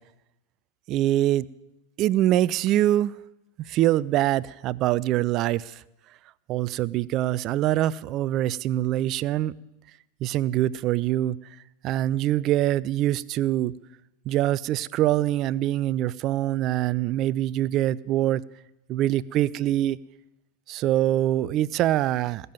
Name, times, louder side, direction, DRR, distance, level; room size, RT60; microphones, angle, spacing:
voice 1, 0.9-1.5 2.0-3.2 3.6-5.8 6.5-9.5 10.2-11.4 11.8-13.7 14.3-18.4 18.9-20.0 20.7-22.5, right 13 dB, 35° right, 21 dB, 0.5 m, -24 dB
20.5 x 6.9 x 9.3 m, 0.92 s
figure-of-eight pair, 90°, 0 cm